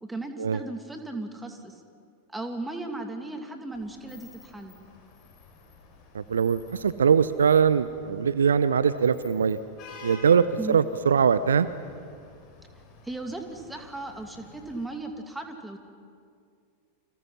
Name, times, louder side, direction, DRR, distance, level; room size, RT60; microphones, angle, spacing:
voice 1, 0.0-1.7 2.3-4.7 10.6-10.8 13.0-15.8, right 2 dB, 5° right, 5 dB, 2.6 m, -36 dB
Vehicle horn car horn honking / Traffic noise roadway noise, 3.7-14.9, left 5 dB, 35° left, 6.3 m, -50 dB
voice 2, 6.1-9.6 10.0-11.7, right 6 dB, 70° right, 15 dB, 0.7 m, -22 dB
29.5 x 26.5 x 5.8 m, 2.3 s
figure-of-eight pair, 90°, 0 cm